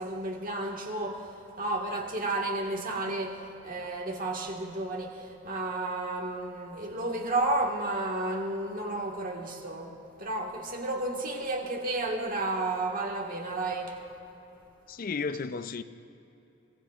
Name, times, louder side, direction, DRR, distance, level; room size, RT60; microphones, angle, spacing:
voice 1, 0.0-14.0, right 2 dB, 45° right, 1.7 m, -32 dB
voice 2, 14.9-15.8, left 4 dB, 45° left, 0.5 m, -33 dB
24.0 x 18.5 x 2.5 m
head